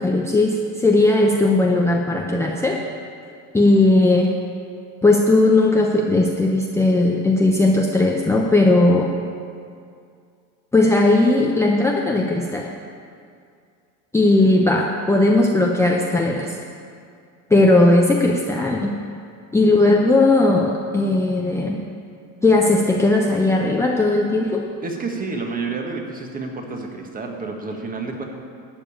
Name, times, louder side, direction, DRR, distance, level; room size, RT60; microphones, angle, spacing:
voice 1, 0.0-2.8 3.5-4.3 5.0-9.1 10.7-12.7 14.1-16.5 17.5-19.0 19.5-21.8 22.4-24.7, left 2 dB, 10° left, 0 dB, 0.7 m, -17 dB
voice 2, 24.8-28.2, right 4 dB, 25° right, 2 dB, 1.5 m, -29 dB
12.0 x 5.4 x 8.6 m, 2.3 s
supercardioid pair, 120°, 36 cm